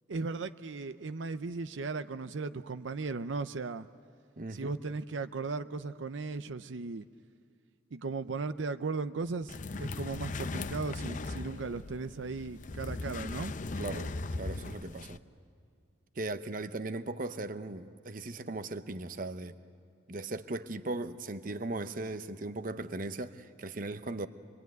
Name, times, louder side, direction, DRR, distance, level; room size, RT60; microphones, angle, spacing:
voice 1, 0.1-3.9 4.5-7.1 7.9-13.5, right 4 dB, 85° right, 0.6 m, -37 dB
voice 2, 4.4-4.8 13.8-15.2 16.1-19.5 20.1-24.3, right 2 dB, 45° right, 0.8 m, -38 dB
sound 1, 9.5-15.2, left 2 dB, 45° left, 0.6 m, -38 dB
27.0 x 23.0 x 9.3 m
head